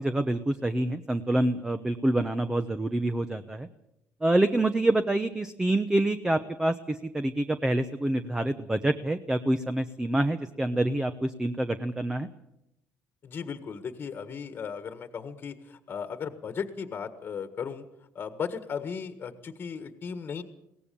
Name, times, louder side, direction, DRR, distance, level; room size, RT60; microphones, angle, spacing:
voice 1, 0.0-3.7 4.2-12.3, right 1 dB, 10° right, 10 dB, 0.9 m, -27 dB
voice 2, 13.2-17.9 18.1-20.4, left 6 dB, 40° left, 9 dB, 1.6 m, -36 dB
22.5 x 18.0 x 7.0 m, 0.83 s
cardioid pair, 120°, 5 cm